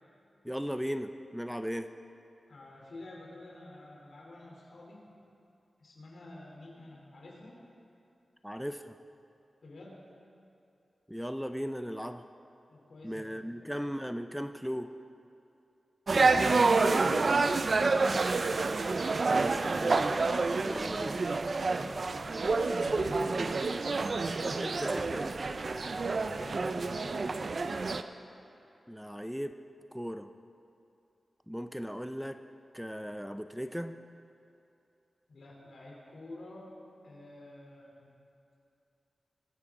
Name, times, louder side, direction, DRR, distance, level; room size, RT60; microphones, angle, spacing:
voice 1, 0.4-1.9 8.4-8.9 11.1-12.2 13.0-14.9 19.2-20.0 20.6-21.2 23.4-23.5 24.4-25.4 28.9-29.5 29.9-30.3 31.5-32.4 32.7-33.9, equal, ahead, 8 dB, 0.5 m, -37 dB
voice 2, 2.5-5.1 5.8-7.6 9.6-10.0 12.7-13.3 13.6-13.7 16.1-18.1 21.7-23.8 26.3-27.6 35.3-36.7 37.0-38.1, left 2 dB, 80° left, -3 dB, 3.3 m, -49 dB
sound 1, 16.1-28.0, right 3 dB, 60° right, 0.5 m, -28 dB
22.5 x 9.7 x 3.7 m, 2.7 s
wide cardioid pair, 70°, 0 cm